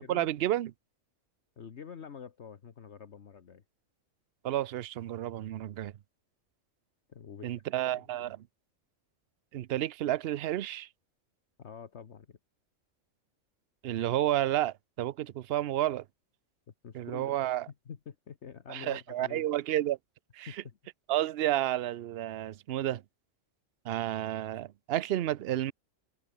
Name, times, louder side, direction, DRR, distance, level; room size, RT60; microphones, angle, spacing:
voice 1, 0.1-0.7 4.4-5.9 7.4-8.4 9.5-10.9 13.8-16.0 16.9-17.6 18.7-20.0 20.3-20.5 21.1-23.0 23.8-25.7, right 13 dB, 60° right, 0.8 m, -31 dB
voice 2, 1.6-3.6 7.1-8.3 11.6-12.4 16.7-17.4 17.8-19.5 20.5-20.8, left 7 dB, 60° left, 1.5 m, -47 dB
omnidirectional pair, 1.3 m